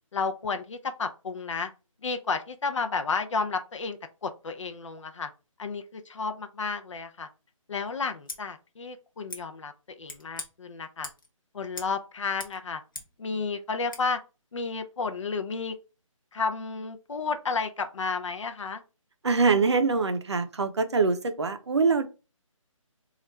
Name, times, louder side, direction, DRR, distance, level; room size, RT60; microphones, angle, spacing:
voice 1, 0.1-1.7 2.0-5.3 5.6-7.3 7.7-9.7 10.0-11.1 11.5-12.8 13.2-14.2 14.5-15.7 16.3-18.8, left 4 dB, 60° left, 0.5 m, -32 dB
Scissors, 8.2-8.4 9.3-9.4 10.0-10.5 11.0-11.3 11.7-12.0 12.2-13.2 13.9-14.0, left 3 dB, 40° left, 0.9 m, -41 dB
voice 2, 19.2-22.1, right 4 dB, 55° right, 0.5 m, -24 dB
3.1 x 2.4 x 4.2 m
hypercardioid pair, 180°, 18 cm